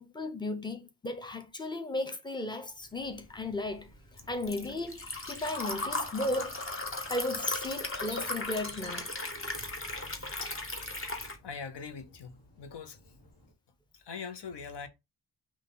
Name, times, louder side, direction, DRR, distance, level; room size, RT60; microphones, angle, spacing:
voice 1, 0.0-3.9 4.3-9.1, left 2 dB, 10° left, 0.8 m, -35 dB
Liquid, 3.1-11.4, left 2 dB, 30° left, 1.1 m, -37 dB
sound 1, 4.2-13.5, left 1 dB, 60° left, 1.4 m, -56 dB
voice 2, 11.4-13.0 13.9-14.9, left 5 dB, 75° left, 0.8 m, -42 dB
5.5 x 2.5 x 3.8 m
wide cardioid pair, 120°, 41 cm